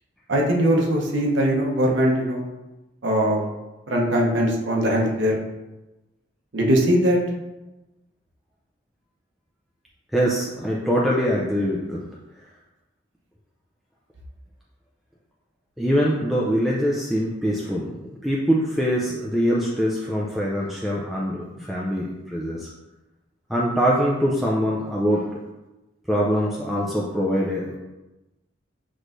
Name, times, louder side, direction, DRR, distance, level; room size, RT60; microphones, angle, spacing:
voice 1, 0.3-2.4 3.0-3.5 3.9-5.4 6.5-7.2, equal, 75° right, -2 dB, 0.9 m, -21 dB
voice 2, 10.1-12.0 12.4-12.5 15.8-22.7 23.5-25.4 26.1-27.8, equal, ahead, -5 dB, 0.3 m, -23 dB
6.3 x 3.1 x 2.6 m, 1.0 s
head